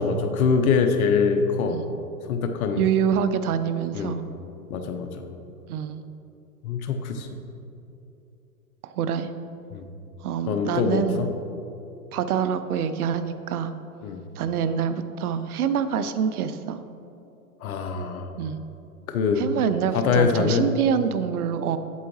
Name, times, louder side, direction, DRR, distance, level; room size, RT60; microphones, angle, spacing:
voice 1, 0.0-1.8 2.3-2.9 3.9-4.2 4.7-5.1 6.6-7.4 9.7-9.9 10.5-11.3 14.0-14.2 17.6-18.3 19.1-19.4 19.9-20.7, left 5 dB, 65° left, 6 dB, 1.0 m, -23 dB
voice 2, 2.8-4.2 5.7-6.0 8.8-9.3 10.2-11.2 12.1-13.7 14.4-16.8 18.4-18.6 19.4-21.8, right 8 dB, 70° right, 11 dB, 0.6 m, -26 dB
8.4 x 8.0 x 3.2 m, 2.8 s
hypercardioid pair, 125°, 46 cm